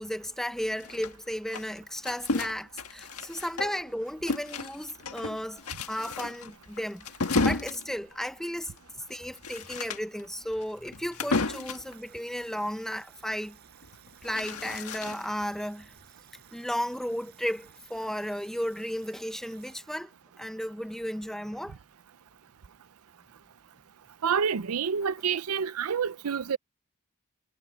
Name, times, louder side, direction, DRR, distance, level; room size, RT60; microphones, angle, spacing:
voice 1, 0.0-5.6 5.9-7.1 7.4-8.8 9.1-13.6 14.2-15.9 16.5-20.1 20.4-21.7, equal, ahead, 0.8 m, -34 dB
sound 1, 0.8-3.9 4.3-11.9 13.8-15.4, left 3 dB, 75° left, 1.6 m, -33 dB
sound 2, 11.6-19.8, right 9 dB, 45° right, 7.4 m, -58 dB
voice 2, 24.2-26.6, right 6 dB, 75° right, 0.5 m, -28 dB
head